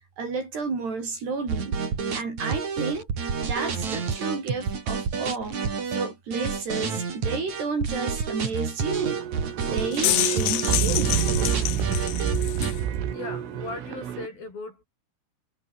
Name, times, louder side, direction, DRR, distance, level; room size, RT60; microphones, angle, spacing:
voice 1, 0.2-1.8 2.1-3.1 3.4-5.6 5.9-9.2 9.6-11.2, right 4 dB, 55° right, 8.9 m, -31 dB
sound 1, 1.5-12.7, right 5 dB, 40° right, 4.7 m, -29 dB
sound 2, 8.9-14.3, right 9 dB, 75° right, 5.6 m, -28 dB
sound 3, 9.7-12.8, left 17 dB, 75° left, 2.4 m, -27 dB
voice 2, 13.1-14.8, left 3 dB, 45° left, 9.6 m, -38 dB
omnidirectional pair, 5.7 m